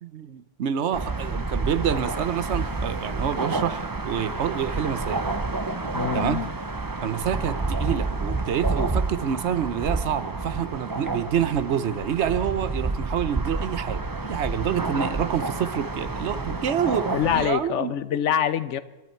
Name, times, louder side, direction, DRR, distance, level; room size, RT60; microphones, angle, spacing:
voice 1, 0.0-5.2 6.1-6.4 7.0-17.9, right 9 dB, 70° right, 14 dB, 1.0 m, -27 dB
sound 1, 0.9-17.5, right 3 dB, 20° right, 0.7 m, -29 dB
voice 2, 5.9-6.5 14.9-15.1 16.9-18.8, left 9 dB, 80° left, 14 dB, 1.1 m, -26 dB
27.0 x 11.5 x 4.5 m, 1.1 s
omnidirectional pair, 1.2 m